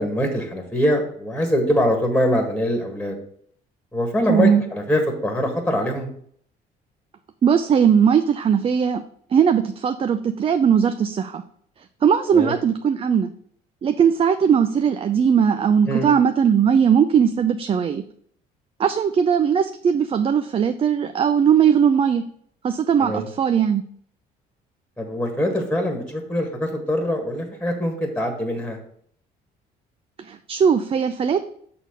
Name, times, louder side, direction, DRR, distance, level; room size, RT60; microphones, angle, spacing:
voice 1, 0.0-3.2 3.9-6.1 12.3-12.5 15.9-16.1 23.0-23.3 25.0-28.8, left 1 dB, 5° left, 3 dB, 1.6 m, -23 dB
voice 2, 4.3-4.6 7.4-9.0 9.3-11.4 12.0-13.3 13.8-18.0 18.8-22.2 22.6-23.8 30.2-31.4, right 7 dB, 35° right, 8 dB, 0.5 m, -19 dB
6.5 x 4.3 x 6.5 m, 0.63 s
cardioid pair, 110°, 17 cm